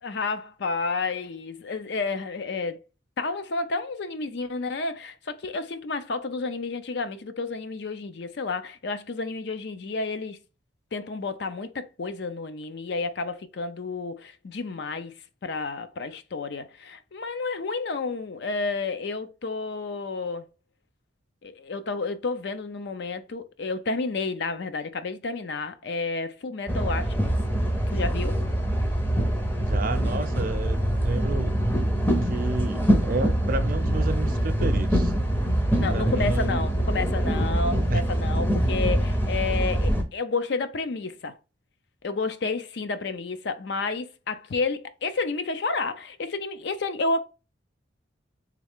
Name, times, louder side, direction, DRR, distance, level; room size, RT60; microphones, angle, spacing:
voice 1, 0.0-2.8 3.2-10.4 10.9-15.2 15.4-20.5 21.4-27.3 27.9-28.4 35.8-41.4 42.0-47.2, left 3 dB, 60° left, 0.5 m, -31 dB
sound 1, 26.7-40.0, right 1 dB, 10° left, 0.6 m, -24 dB
voice 2, 29.6-31.5 32.3-35.1 35.9-36.6 37.9-38.0, right 2 dB, 50° right, 0.6 m, -31 dB
3.6 x 3.2 x 3.5 m
head